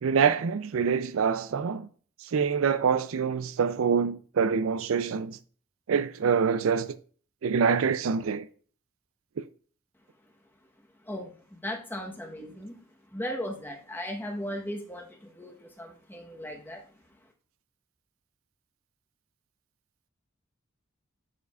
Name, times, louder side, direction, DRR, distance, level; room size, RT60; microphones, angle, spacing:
voice 1, 0.0-1.8 2.3-5.4 5.9-7.0 7.4-8.5, right 6 dB, 70° right, 0.4 m, -25 dB
voice 2, 11.0-12.8 13.1-16.8, equal, 10° left, 1.0 m, -37 dB
10.5 x 4.7 x 2.4 m
head